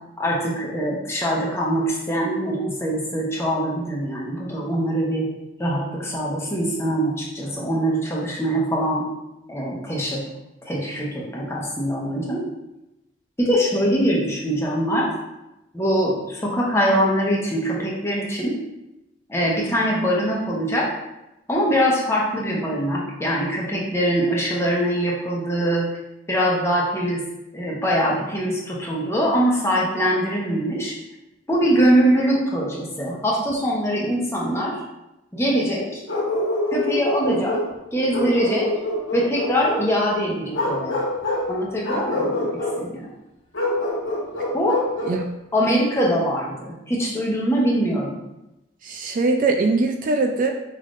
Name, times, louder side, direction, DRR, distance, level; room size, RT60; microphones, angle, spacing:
voice 1, 0.2-5.3 5.6-9.1 9.5-10.2 10.7-12.5 13.4-15.1 15.7-18.6 19.3-20.9 21.5-26.0 26.3-27.2 27.5-30.9 31.5-34.8 35.3-36.0 36.7-37.6 37.9-38.7 39.1-41.0 41.5-43.1 44.5-44.8 45.5-48.2, equal, 15° left, -3 dB, 0.9 m, -23 dB
Bark, 36.1-37.7 38.1-39.9 40.5-41.5 41.8-42.8 43.5-45.2, left 1 dB, 80° left, 1.4 m, -25 dB
voice 2, 48.8-50.5, right 3 dB, 45° right, 4 dB, 0.3 m, -21 dB
5.4 x 3.6 x 2.5 m, 0.94 s
head